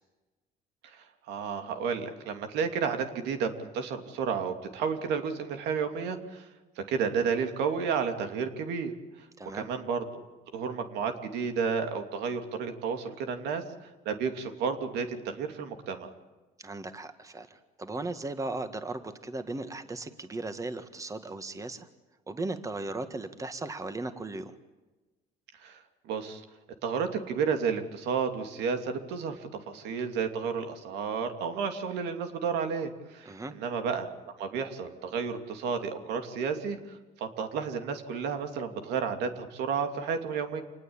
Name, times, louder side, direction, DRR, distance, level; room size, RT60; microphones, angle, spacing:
voice 1, 0.8-6.4 6.8-8.9 9.5-10.2 10.5-13.6 14.0-16.1 25.6-26.4 26.8-34.1 34.4-40.6, right 6 dB, 85° right, 6 dB, 2.9 m, -32 dB
voice 2, 16.6-21.9 22.3-24.5 33.3-33.5, right 2 dB, 20° right, 9 dB, 1.8 m, -37 dB
27.5 x 20.0 x 8.9 m, 1.2 s
cardioid pair, 110°, 17 cm